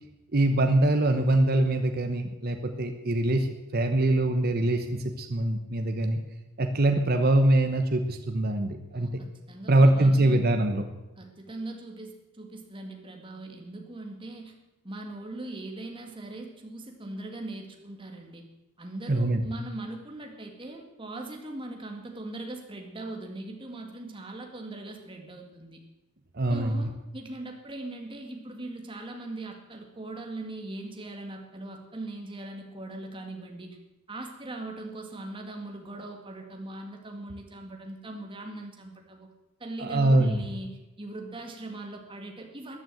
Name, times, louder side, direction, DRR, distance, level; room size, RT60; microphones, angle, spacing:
voice 1, 0.3-3.5 3.7-6.2 6.6-9.1 9.7-10.9 19.1-19.4 26.3-26.9 39.8-40.3, right 1 dB, 45° right, 6 dB, 1.0 m, -23 dB
voice 2, 8.9-10.4 11.2-14.5 14.8-18.5 18.8-25.8 26.5-33.8 34.1-39.3 39.6-42.8, right 2 dB, 25° right, 3 dB, 1.9 m, -40 dB
14.5 x 9.3 x 7.7 m, 0.99 s
head